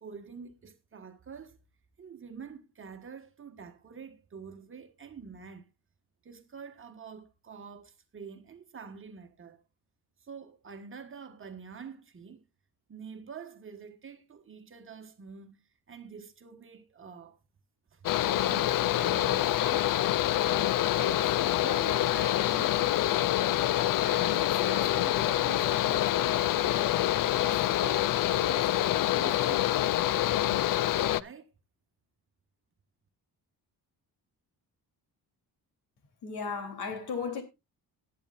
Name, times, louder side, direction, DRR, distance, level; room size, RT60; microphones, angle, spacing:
voice 1, 0.0-1.6 2.0-5.7 6.2-9.6 10.2-12.4 12.9-17.4 17.9-20.0 20.5-23.3 23.8-26.9 27.4-31.5, right 6 dB, 35° right, 1.4 m, -47 dB
Mechanical fan, 18.0-31.2, left 13 dB, 60° left, 0.5 m, -26 dB
voice 2, 36.2-37.4, left 5 dB, 90° left, 3.2 m, -34 dB
19.0 x 9.6 x 2.5 m
wide cardioid pair, 165°, 38 cm